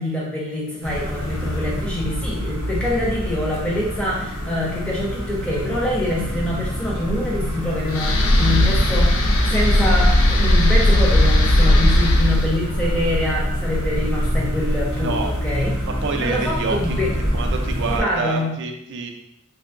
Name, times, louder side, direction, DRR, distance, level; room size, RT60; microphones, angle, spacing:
voice 1, 0.0-15.2 15.4-15.7 16.2-17.1 17.9-18.5, left 1 dB, 5° left, -5 dB, 0.7 m, -25 dB
sound 1, 0.8-18.0, equal, 85° left, 1.2 m, -27 dB
sound 2, 7.9-15.1, left 1 dB, 65° left, 0.5 m, -18 dB
voice 2, 14.9-15.3 15.9-17.0 17.3-19.1, right 4 dB, 55° right, 4 dB, 0.4 m, -27 dB
3.4 x 2.7 x 2.7 m, 0.79 s
head